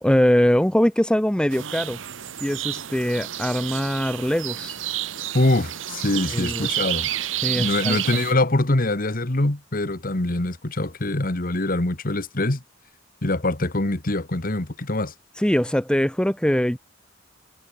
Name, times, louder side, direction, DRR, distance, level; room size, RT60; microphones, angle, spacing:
voice 1, 0.0-2.0 2.4-4.7 6.3-6.7 7.4-8.0 15.4-16.8, equal, 5° left, 1.0 m, -22 dB
sound 1, 1.5-8.3, right 12 dB, 85° right, 1.2 m, -30 dB
voice 2, 5.3-7.1 7.5-12.6 13.2-15.1, left 2 dB, 50° left, 1.7 m, -24 dB
head